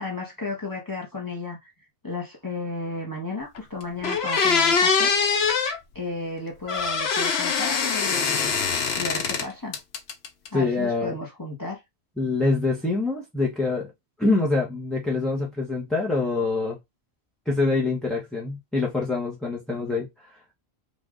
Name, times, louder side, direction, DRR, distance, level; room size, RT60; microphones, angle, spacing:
voice 1, 0.0-1.7 2.0-5.1 5.4-5.6 5.9-8.6 9.0-9.8 10.5-11.8, left 2 dB, 20° left, 1.2 m, -33 dB
sound 1, 3.5-3.6 4.0-5.8 6.7-9.5 9.7-10.5, left 5 dB, 75° left, 1.1 m, -23 dB
voice 2, 10.5-11.2 12.2-13.9 14.2-16.8 17.5-20.1, left 3 dB, ahead, 0.9 m, -25 dB
5.3 x 2.6 x 3.7 m
omnidirectional pair, 1.1 m